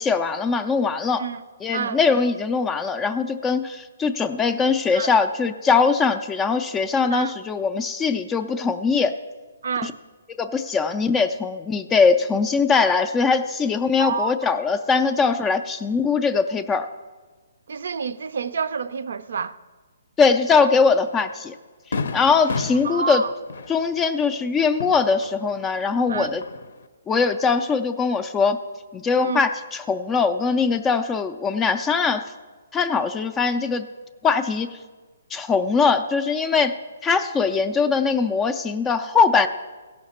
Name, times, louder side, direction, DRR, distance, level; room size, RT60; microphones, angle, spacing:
voice 1, 0.0-1.2 1.6-9.1 9.8-9.9 10.4-16.9 20.2-21.5 22.1-23.2 23.7-26.4 27.1-28.6 28.9-32.2 32.7-33.9 34.2-34.8 35.3-36.8 37.0-39.5, left 5 dB, 10° left, 0.3 m, -21 dB
voice 2, 9.6-10.0 14.0-14.3 17.7-19.6 22.8-23.3 26.1-26.3 29.2-29.4, right 6 dB, 65° right, 0.4 m, -28 dB
Fireworks, 20.9-21.0 21.4-21.5 21.9-25.7 26.0-26.9, left 4 dB, 65° left, 0.6 m, -33 dB
16.0 x 5.8 x 4.2 m
hypercardioid pair, 170°, 0 cm